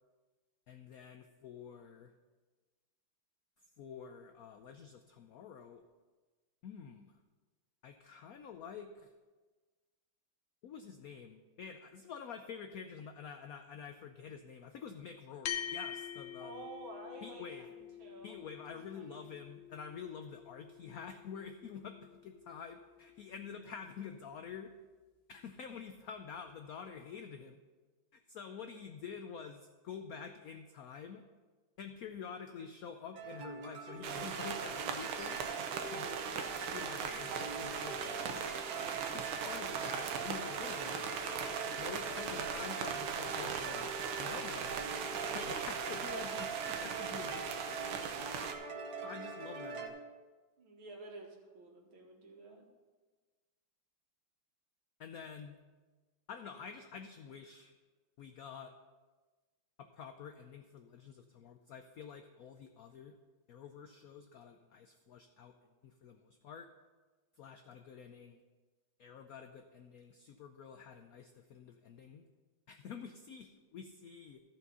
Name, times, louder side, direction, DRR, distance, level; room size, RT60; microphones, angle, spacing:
voice 1, 0.7-2.1 3.8-5.8 6.6-7.2 7.8-9.1 10.6-16.7 17.2-17.7 18.2-24.7 25.3-27.6 28.1-31.2 31.8-35.5 35.9-38.4 38.9-41.0 41.8-44.8 45.3-47.5 47.9-48.1 49.0-49.9 55.0-55.6 56.3-57.7 58.2-58.7 59.8-63.2 63.5-65.5 65.8-66.7 67.4-68.4 69.0-72.2 72.7-74.4, left 6 dB, 85° left, 7 dB, 0.7 m, -48 dB
sound 1, 15.5-24.1, left 10 dB, 70° left, 1.3 m, -47 dB
voice 2, 16.4-18.4 18.6-19.3 50.6-52.7, right 2 dB, 75° right, 0 dB, 2.5 m, -51 dB
sound 2, 33.2-49.9, right 5 dB, 55° right, 1.5 m, -43 dB
sound 3, 34.0-48.5, right 6 dB, 90° right, 1.7 m, -39 dB
14.0 x 5.5 x 5.5 m, 1.3 s
omnidirectional pair, 2.2 m